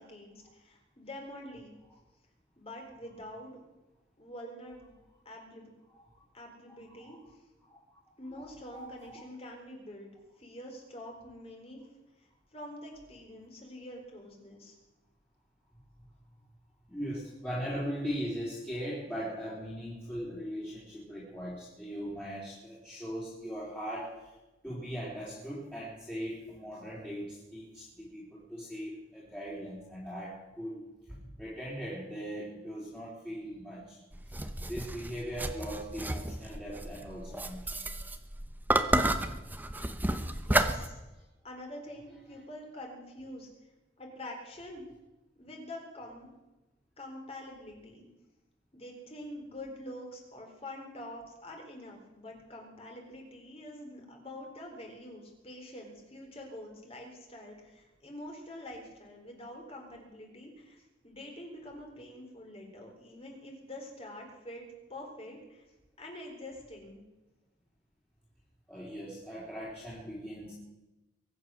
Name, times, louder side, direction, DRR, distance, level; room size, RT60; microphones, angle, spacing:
voice 1, 0.0-1.8 2.6-3.6 4.2-4.9 5.3-5.7 6.3-7.4 8.2-10.1 10.4-11.8 12.2-14.8 40.3-41.0 41.4-43.5 44.0-44.8 45.4-46.3 47.0-48.1 48.7-65.7 66.0-67.0, left 1 dB, 30° left, 1 dB, 3.8 m, -46 dB
voice 2, 6.7-7.2 7.6-7.8 8.3-9.2 16.9-24.3 24.6-30.8 31.1-34.0 34.6-37.7 42.3-42.4 68.7-70.5, equal, 10° left, -8 dB, 3.7 m, -40 dB
sound 1, 34.1-40.9, right 1 dB, 10° right, 0.7 m, -31 dB
23.0 x 8.9 x 6.4 m, 1.1 s
head